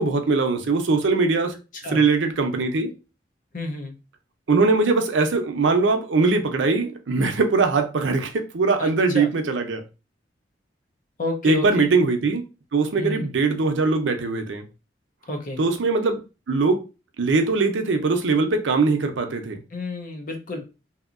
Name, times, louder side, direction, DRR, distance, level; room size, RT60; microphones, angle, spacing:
voice 1, 0.0-1.6 1.9-2.9 4.5-9.8 11.4-12.4 12.7-14.6 15.6-16.2 16.5-16.8 17.2-19.6, right 3 dB, 85° right, 0.5 m, -21 dB
voice 2, 3.5-4.0 8.8-9.3 11.2-11.9 13.0-13.3 15.3-15.6 19.7-20.6, left 1 dB, 50° left, 0.6 m, -30 dB
2.8 x 2.6 x 2.4 m
head